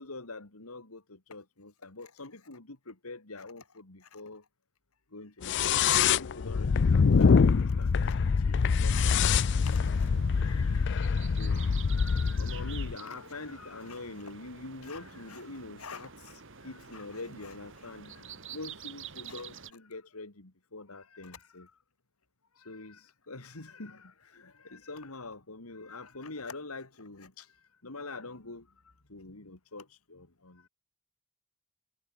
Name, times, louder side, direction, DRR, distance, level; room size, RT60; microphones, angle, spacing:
voice 1, 0.0-4.5 5.1-21.7 22.5-30.7, left 3 dB, 85° left, 2.6 m, -45 dB
sound 1, 5.4-13.0, left 5 dB, 55° left, 0.4 m, -25 dB
sound 2, 8.6-19.7, right 7 dB, 60° right, 2.3 m, -48 dB
head